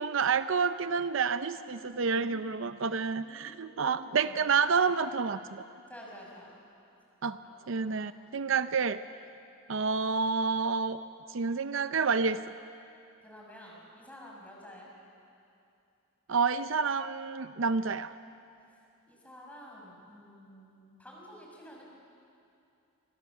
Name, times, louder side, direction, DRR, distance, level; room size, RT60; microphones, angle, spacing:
voice 1, 0.0-5.7 7.2-7.4 7.7-9.0 9.7-11.0 11.3-12.4 16.3-18.1, right 5 dB, 60° right, 12 dB, 0.6 m, -29 dB
voice 2, 1.6-2.4 3.0-4.5 5.9-6.6 7.4-7.9 13.2-14.9 19.1-21.8, equal, 5° left, -2 dB, 5.7 m, -51 dB
28.0 x 25.5 x 7.2 m, 2.6 s
head